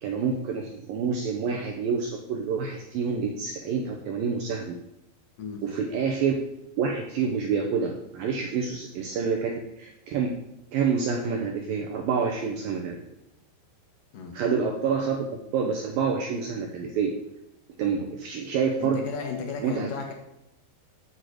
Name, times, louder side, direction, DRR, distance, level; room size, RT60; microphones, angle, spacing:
voice 1, 0.0-4.7 5.6-6.3 6.8-10.3 10.7-13.0 14.3-15.3 15.5-17.1 17.8-19.0 19.6-19.9, right 6 dB, 85° right, 1 dB, 2.0 m, -27 dB
voice 2, 18.8-20.1, left 5 dB, 65° left, 2 dB, 2.5 m, -34 dB
8.0 x 6.6 x 7.7 m, 0.83 s
omnidirectional pair, 5.4 m